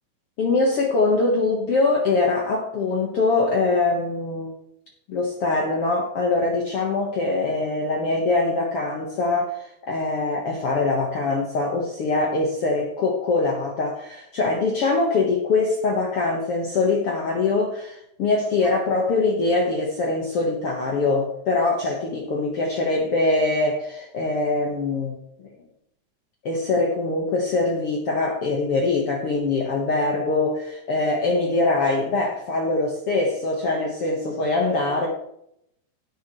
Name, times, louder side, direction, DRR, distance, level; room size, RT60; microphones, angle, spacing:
voice 1, 0.4-4.5 5.1-25.5 26.4-35.1, left 3 dB, 75° left, -1 dB, 1.3 m, -23 dB
18.0 x 6.8 x 3.2 m, 0.75 s
omnidirectional pair, 4.9 m